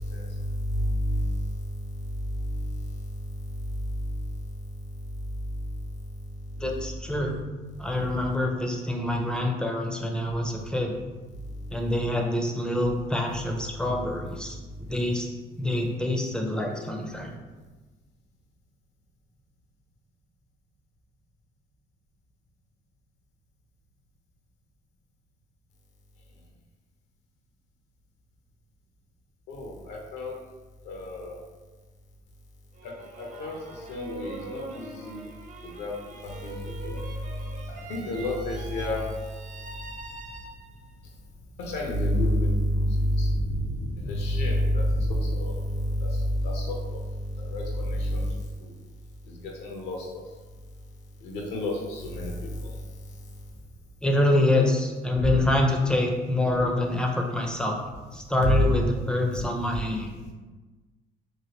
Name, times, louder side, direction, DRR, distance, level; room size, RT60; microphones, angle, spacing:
voice 1, 0.7-1.3 29.5-30.3 30.9-31.4 33.2-33.5 33.9-35.2 35.8-35.9 36.4-36.5 36.8-36.9 37.9-39.1 41.6-46.1 46.4-47.0 47.4-48.3 49.6-50.2 51.2-52.3 55.2-55.4 58.4-58.6 59.3-59.4, left 1 dB, 85° left, 0 dB, 0.6 m, -28 dB
voice 2, 6.6-7.4 7.8-10.9 11.7-15.3 15.6-17.4 54.0-57.8 58.1-60.1, left 1 dB, 5° left, 1 dB, 0.4 m, -26 dB
sound 1, 32.7-40.9, right 2 dB, 50° right, 0.5 m, -43 dB
3.2 x 2.4 x 2.8 m, 1.3 s
cardioid pair, 110°, 17 cm